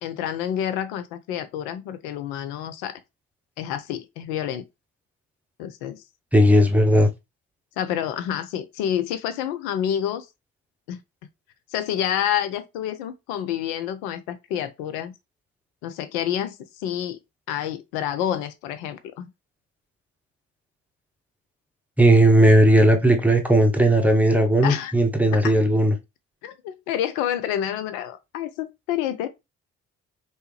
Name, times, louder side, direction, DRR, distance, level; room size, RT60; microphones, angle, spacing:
voice 1, 0.0-3.0 3.6-4.6 5.6-6.0 7.8-10.3 10.9-11.0 11.7-15.1 15.8-17.2 17.5-19.3 24.6-24.9 25.4-25.6 26.4-29.3, left 10 dB, 70° left, 0.5 m, -28 dB
voice 2, 6.3-7.1 22.0-25.9, right 1 dB, 5° right, 0.8 m, -16 dB
3.2 x 2.8 x 3.1 m
figure-of-eight pair, 40°, 38 cm